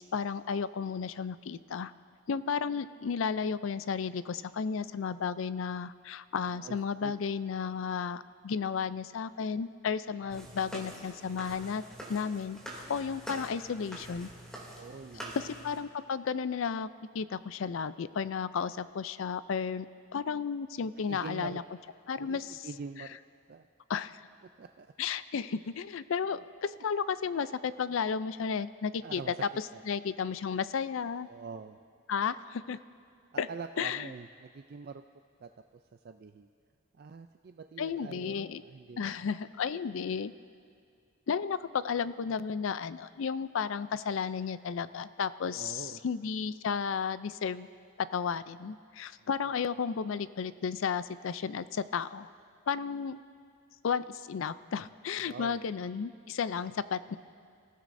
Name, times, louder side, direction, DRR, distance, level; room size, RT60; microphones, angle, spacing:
voice 1, 0.0-1.9 2.3-11.8 12.1-14.3 15.3-16.9 17.1-21.6 22.1-22.7 23.9-24.2 25.0-29.2 29.9-31.3 32.1-32.8 33.4-33.5 33.8-34.1 37.8-38.6 39.0-40.3 41.3-47.7 48.0-52.3 52.7-53.2 53.8-57.1, left 6 dB, 70° left, 15 dB, 0.4 m, -33 dB
voice 2, 4.2-4.8 6.5-7.1 14.8-15.4 21.1-21.6 22.2-23.2 23.5-23.7 24.6-24.9 26.4-26.5 29.0-29.4 29.7-29.8 31.3-31.8 33.3-35.0 35.4-35.5 35.9-36.5 36.9-39.2 45.4-46.0 49.2-49.3 55.2-55.6 57.1-57.2, right 5 dB, 50° right, 7 dB, 0.4 m, -45 dB
sound 1, 10.3-15.8, right 1 dB, 5° left, 2.6 m, -45 dB
27.5 x 15.5 x 2.6 m, 2.2 s
head